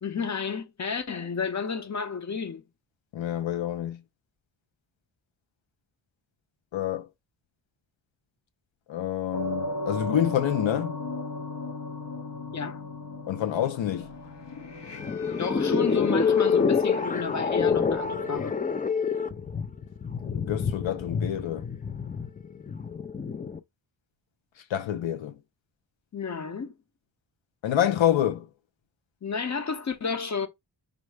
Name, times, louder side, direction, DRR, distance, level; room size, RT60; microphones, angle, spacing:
voice 1, 0.0-2.6 12.5-12.8 15.4-18.5 26.1-26.7 29.2-30.5, left 5 dB, 40° left, 1.0 m, -31 dB
voice 2, 3.1-4.0 6.7-7.1 8.9-11.0 13.3-14.1 20.2-21.7 24.6-25.4 27.6-28.5, left 11 dB, 80° left, 0.7 m, -27 dB
sound 1, 9.3-18.4, left 2 dB, 65° left, 1.3 m, -37 dB
sound 2, 14.8-23.6, left 5 dB, 20° left, 0.4 m, -27 dB
5.3 x 2.1 x 4.7 m
wide cardioid pair, 95°, 45 cm